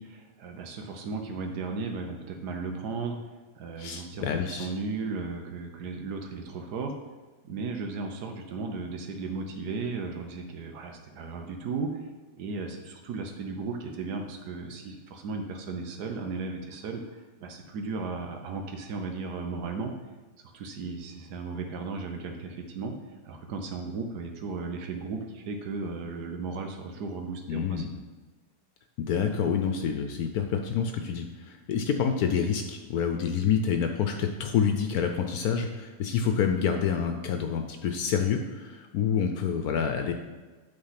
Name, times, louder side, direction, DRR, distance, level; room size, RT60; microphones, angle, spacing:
voice 1, 0.0-3.2 3.6-6.9 7.4-12.0 12.4-19.9 20.5-22.9 23.2-27.8, right 4 dB, 90° right, 4 dB, 1.4 m, -35 dB
voice 2, 3.8-4.7 27.5-27.9 29.0-40.1, left 7 dB, 75° left, 5 dB, 1.1 m, -27 dB
8.7 x 3.9 x 5.7 m, 1.3 s
omnidirectional pair, 1.7 m